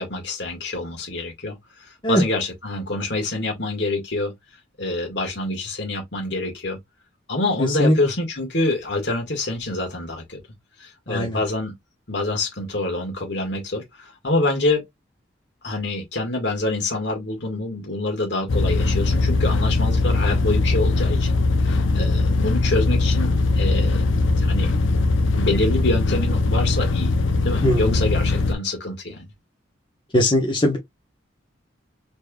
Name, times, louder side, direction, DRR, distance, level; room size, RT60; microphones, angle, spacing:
voice 1, 0.0-4.3 4.8-6.8 7.3-10.4 10.8-11.7 12.1-14.9 15.6-21.4 21.6-24.7 25.3-27.1 27.4-29.3, left 2 dB, 60° left, 1.8 m, -26 dB
voice 2, 7.6-8.0 11.1-11.4 27.6-28.0 30.1-30.8, left 1 dB, 25° left, 1.1 m, -20 dB
sound 1, 18.5-28.5, left 3 dB, 85° left, 0.7 m, -20 dB
4.3 x 3.5 x 2.3 m
head